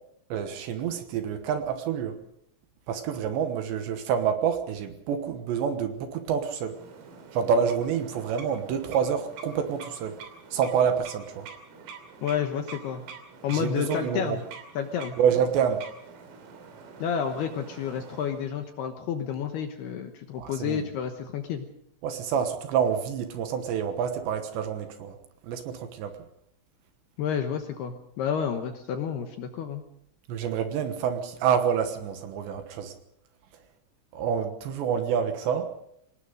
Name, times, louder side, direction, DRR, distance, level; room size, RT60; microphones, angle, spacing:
voice 1, 0.3-2.2 2.9-6.8 7.3-10.1 10.5-11.5 13.5-14.4 15.2-15.8 20.4-20.8 22.0-25.2 25.4-26.1 30.3-32.9 34.1-35.7, right 7 dB, 70° right, 8 dB, 3.2 m, -27 dB
sound 1, 6.7-18.5, right 5 dB, 90° right, 5.7 m, -46 dB
voice 2, 12.2-13.0 13.4-14.4 14.7-15.2 17.0-21.7 27.2-29.8, left 8 dB, 70° left, 6 dB, 2.6 m, -30 dB
25.5 x 19.5 x 5.2 m, 0.73 s
omnidirectional pair, 5.9 m